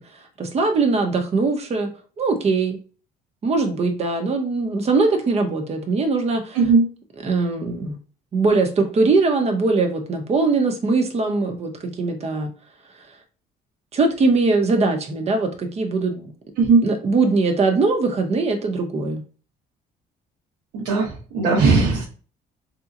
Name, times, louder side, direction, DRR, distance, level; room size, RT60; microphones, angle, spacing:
voice 1, 0.4-1.9 2.2-2.8 3.4-6.6 7.2-8.0 8.3-12.5 13.9-16.3 16.8-19.2, right 3 dB, 40° right, 5 dB, 0.9 m, -21 dB
voice 2, 6.5-6.9 16.6-16.8 20.7-22.0, right 4 dB, 80° right, -6 dB, 1.2 m, -17 dB
3.6 x 2.9 x 2.5 m, 0.38 s
cardioid pair, 110°, 17 cm